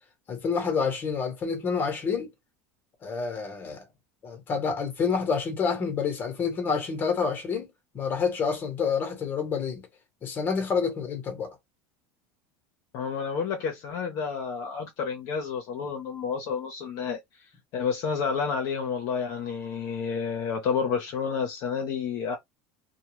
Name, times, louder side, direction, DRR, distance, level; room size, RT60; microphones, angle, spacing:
voice 1, 0.3-2.3 3.0-3.8 4.2-7.7 7.9-9.9 10.2-11.6, left 5 dB, 30° left, 1.1 m, -28 dB
voice 2, 12.9-17.2 17.7-22.4, left 6 dB, 55° left, 0.8 m, -30 dB
2.3 x 2.3 x 3.1 m
supercardioid pair, 140°, 7 cm